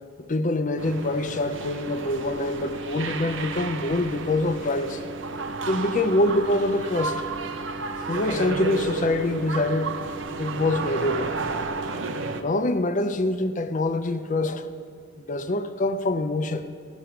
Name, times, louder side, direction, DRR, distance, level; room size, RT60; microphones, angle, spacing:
voice 1, 0.2-5.0 5.7-7.3 8.0-10.0 10.4-11.3 12.4-14.7 15.2-16.7, left 2 dB, 40° left, 0.6 m, -25 dB
sound 1, 0.8-12.4, right 3 dB, 65° right, 0.7 m, -32 dB
17.5 x 6.2 x 5.7 m
head